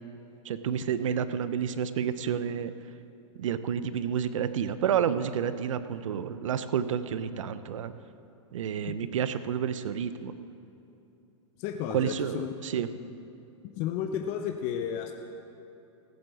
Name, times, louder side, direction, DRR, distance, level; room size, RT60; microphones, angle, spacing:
voice 1, 0.4-2.7 3.4-7.9 8.5-10.3 11.9-12.9, right 8 dB, 80° right, 13 dB, 0.7 m, -30 dB
voice 2, 11.6-12.5 13.8-15.1, left 9 dB, 45° left, 5 dB, 0.9 m, -33 dB
15.0 x 7.7 x 7.1 m, 2.9 s
hypercardioid pair, 115°, 16 cm